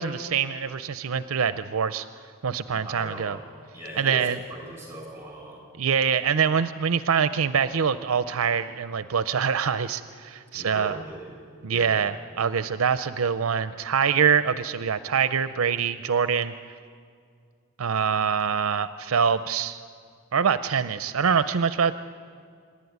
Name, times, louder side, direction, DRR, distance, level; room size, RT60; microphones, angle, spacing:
voice 1, 0.0-2.1 2.4-3.4 4.0-4.4 5.8-11.0 11.6-16.5 17.8-19.8 20.3-21.9, right 7 dB, 70° right, 12 dB, 0.5 m, -24 dB
voice 2, 2.7-3.4 3.7-5.6 10.5-11.3 11.7-12.0, equal, 10° right, 0 dB, 7.1 m, -39 dB
26.5 x 11.5 x 9.5 m, 2.2 s
head